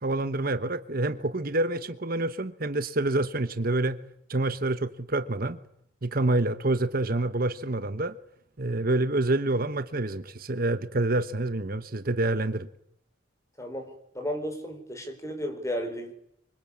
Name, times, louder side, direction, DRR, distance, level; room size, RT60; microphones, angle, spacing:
voice 1, 0.0-4.0 4.3-5.6 6.0-8.1 8.6-12.7, right 2 dB, 45° right, 10 dB, 1.1 m, -27 dB
voice 2, 13.6-16.1, equal, 15° left, 5 dB, 4.8 m, -34 dB
25.5 x 24.5 x 8.7 m, 0.74 s
head